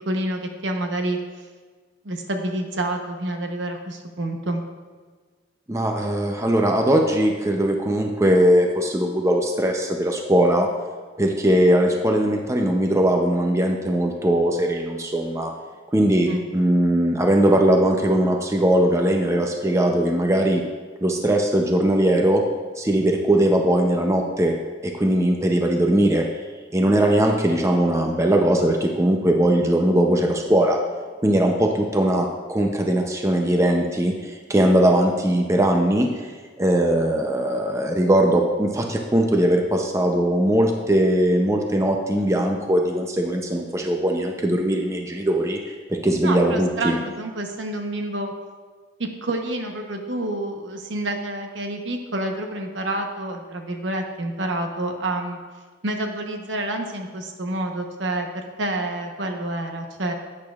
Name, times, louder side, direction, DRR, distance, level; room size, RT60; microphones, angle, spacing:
voice 1, 0.1-1.2 2.0-4.6 16.3-16.5 46.2-48.3 49.0-55.4 55.8-60.1, right 1 dB, 70° right, 4 dB, 0.9 m, -28 dB
voice 2, 5.7-10.7 11.2-15.5 15.9-20.6 21.0-22.4 22.8-24.6 24.8-26.3 26.7-30.8 31.2-36.1 36.6-47.0, right 1 dB, 15° right, 2 dB, 0.5 m, -20 dB
11.0 x 8.6 x 2.4 m, 1.5 s
head